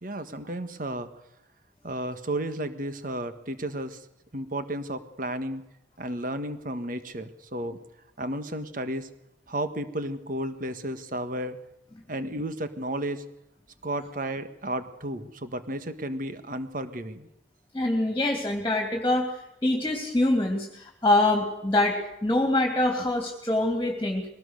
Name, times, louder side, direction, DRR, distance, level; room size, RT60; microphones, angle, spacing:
voice 1, 0.0-1.1 1.8-4.0 4.3-5.6 6.0-7.8 8.2-9.1 9.5-11.6 12.1-13.2 13.8-17.3, right 1 dB, 45° right, 10 dB, 1.6 m, -33 dB
voice 2, 17.7-19.3 19.6-22.0 22.2-24.3, left 2 dB, 15° left, 2 dB, 2.9 m, -24 dB
22.5 x 18.5 x 6.6 m, 0.83 s
head